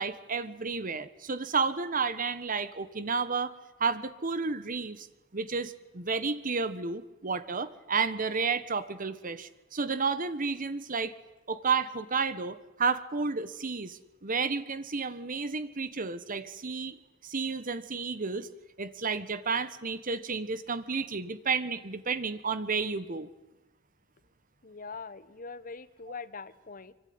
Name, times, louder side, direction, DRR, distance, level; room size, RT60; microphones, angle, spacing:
voice 1, 0.0-3.5 3.8-5.1 5.3-11.1 11.5-16.9 17.2-18.5 18.8-23.3, right 4 dB, 40° right, 14 dB, 1.3 m, -31 dB
voice 2, 24.6-26.9, left 4 dB, 45° left, 16 dB, 1.2 m, -42 dB
25.5 x 24.0 x 9.6 m, 1.0 s
head